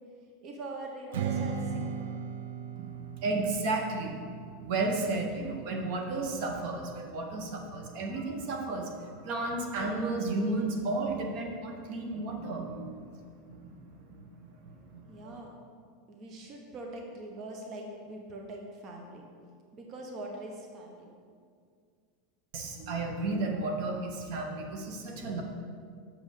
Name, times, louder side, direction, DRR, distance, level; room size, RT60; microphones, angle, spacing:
voice 1, 0.4-2.1 15.1-15.5 16.1-19.2 19.7-21.1, right 2 dB, 40° right, 1 dB, 1.0 m, -42 dB
Strum, 1.1-6.4, right 6 dB, 80° right, 0.5 m, -38 dB
voice 2, 2.8-13.1 13.4-14.6 14.9-15.4 22.5-25.4, right 2 dB, 60° right, 2 dB, 1.2 m, -33 dB
7.0 x 5.5 x 6.6 m, 2.2 s
supercardioid pair, 140°, 0 cm